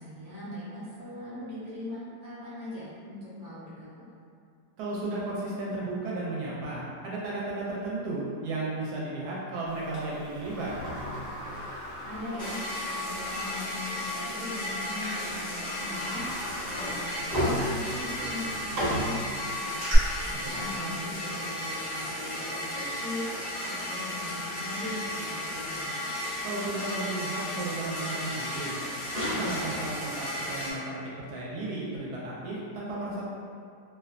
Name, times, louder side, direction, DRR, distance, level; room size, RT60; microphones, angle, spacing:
voice 1, 0.0-4.1 12.0-25.8, left 1 dB, 20° right, -13 dB, 0.5 m, -40 dB
voice 2, 4.8-10.7 20.3-21.0 26.4-28.7 29.1-33.3, right 2 dB, 80° right, -6 dB, 1.1 m, -34 dB
Sliding door, 9.9-13.2 13.5-13.6 14.6-14.8 15.2-20.0, equal, 45° right, 0.9 m, -34 dB
sound 1, 12.4-30.7, left 1 dB, 60° left, 0.6 m, -34 dB
2.7 x 2.1 x 2.4 m, 2.3 s
omnidirectional pair, 1.7 m